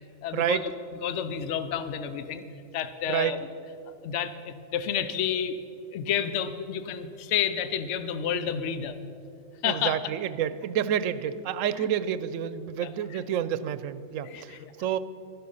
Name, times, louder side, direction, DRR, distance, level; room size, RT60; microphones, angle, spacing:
voice 1, 0.2-0.7 1.0-2.4 2.7-3.4 3.9-5.6 5.9-9.0 9.6-10.0 12.8-12.9 14.3-14.7, left 8 dB, 70° left, 11 dB, 1.0 m, -30 dB
voice 2, 9.6-15.0, right 10 dB, 85° right, 14 dB, 1.0 m, -29 dB
12.5 x 11.5 x 5.5 m, 2.5 s
omnidirectional pair, 1.3 m